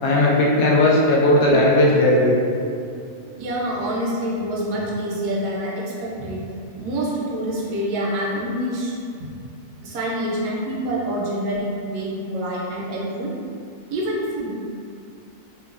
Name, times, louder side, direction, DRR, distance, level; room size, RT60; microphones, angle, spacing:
voice 1, 0.0-2.4, left 1 dB, 75° left, -5 dB, 1.0 m, -16 dB
sound 1, 1.5-5.1, right 3 dB, 5° left, 0.9 m, -35 dB
voice 2, 3.4-6.5 6.8-8.9 9.2-9.3 9.8-13.3 13.9-14.5, equal, 90° right, -5 dB, 1.2 m, -26 dB
3.0 x 2.1 x 2.4 m, 2.5 s
omnidirectional pair, 1.6 m